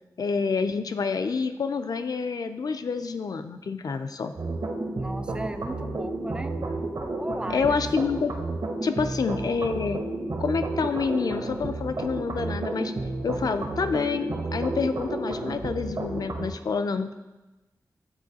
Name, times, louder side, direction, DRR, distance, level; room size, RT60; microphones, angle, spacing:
voice 1, 0.2-4.3 7.5-8.3 8.8-10.0 10.4-12.9 13.2-17.1, left 5 dB, 60° left, 9 dB, 0.4 m, -28 dB
sound 1, 4.4-16.5, right 2 dB, 65° right, 0.8 m, -32 dB
voice 2, 5.0-6.6 7.2-7.8 9.0-9.1, right 1 dB, 15° right, 9 dB, 0.3 m, -36 dB
8.8 x 3.8 x 2.8 m, 1.1 s
wide cardioid pair, 95°, 7 cm